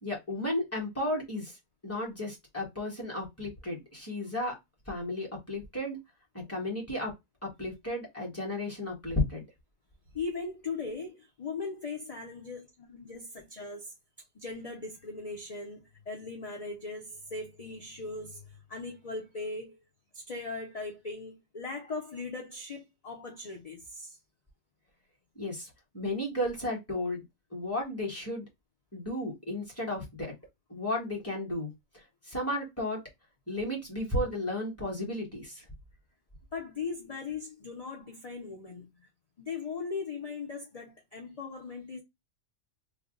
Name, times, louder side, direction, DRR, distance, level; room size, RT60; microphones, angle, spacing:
voice 1, 0.0-1.6 1.8-4.5 4.9-6.0 6.3-7.1 7.6-9.5 25.3-27.2 27.5-28.4 28.9-30.3 30.7-31.7 32.2-33.0 33.5-35.6, left 1 dB, 10° left, 1.4 m, -33 dB
voice 2, 10.1-13.9 14.3-19.8 20.1-24.2 36.5-39.1 39.4-42.0, left 4 dB, 35° left, 0.6 m, -39 dB
3.4 x 2.2 x 3.7 m
omnidirectional pair, 1.5 m